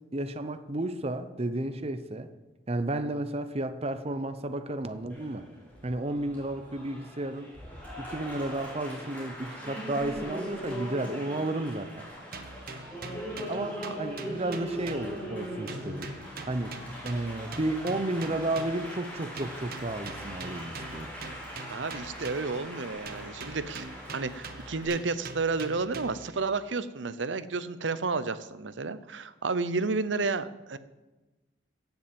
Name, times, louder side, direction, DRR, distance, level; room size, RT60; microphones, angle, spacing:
voice 1, 0.1-2.3 2.7-5.5 5.8-7.5 8.0-12.1 13.5-16.1 16.4-16.8 17.0-21.1, right 1 dB, 35° right, 0.8 m, -32 dB
Applause, 5.1-24.9, equal, 10° left, 5.0 m, -41 dB
sound 1, 12.3-15.4 15.7-19.0 19.4-22.7 23.1-26.4, right 3 dB, 55° right, 1.1 m, -44 dB
voice 2, 21.7-23.9 24.1-30.8, right 4 dB, 90° right, 0.8 m, -31 dB
16.5 x 7.2 x 7.6 m
head